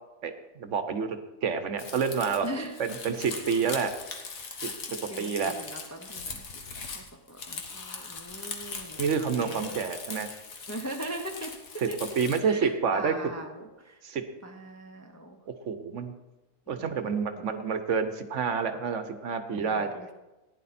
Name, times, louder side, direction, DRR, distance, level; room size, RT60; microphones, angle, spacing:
voice 1, 0.2-2.5 2.8-3.9 4.6-4.7 5.2-5.5 9.0-10.3 11.8-11.9 12.2-13.1 14.0-14.2 15.5-16.1 16.7-19.9, right 6 dB, 65° right, 9 dB, 1.1 m, -28 dB
Crumpling crinkling, 1.8-12.4, left 4 dB, 80° left, 1.7 m, -40 dB
voice 2, 2.4-2.8 5.1-6.4 6.9-9.8 10.7-12.0 12.4-14.0 14.4-15.4 16.7-17.5 19.5-20.1, right 1 dB, 15° left, 3 dB, 0.6 m, -40 dB
15.0 x 10.0 x 4.2 m, 1.1 s
omnidirectional pair, 1.4 m